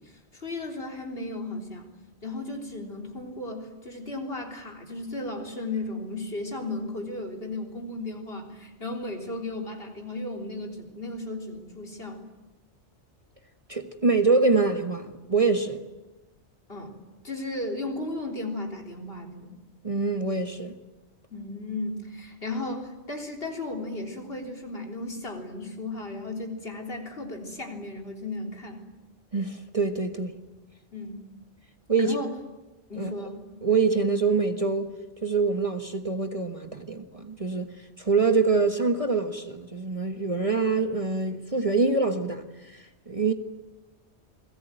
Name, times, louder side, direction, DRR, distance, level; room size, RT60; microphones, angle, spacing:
voice 1, 0.0-1.9 2.2-12.2 16.7-16.9 17.2-19.5 21.3-28.8 30.9-31.3 32.0-32.3 32.9-33.4, left 2 dB, 55° left, 3.9 m, -35 dB
voice 2, 13.7-15.8 19.8-20.7 29.3-30.3 31.9-32.2 33.0-33.1 33.6-34.9 35.2-37.7 38.0-42.4 42.7-43.3, right 4 dB, 30° right, 1.5 m, -25 dB
28.5 x 21.5 x 9.1 m
omnidirectional pair, 1.2 m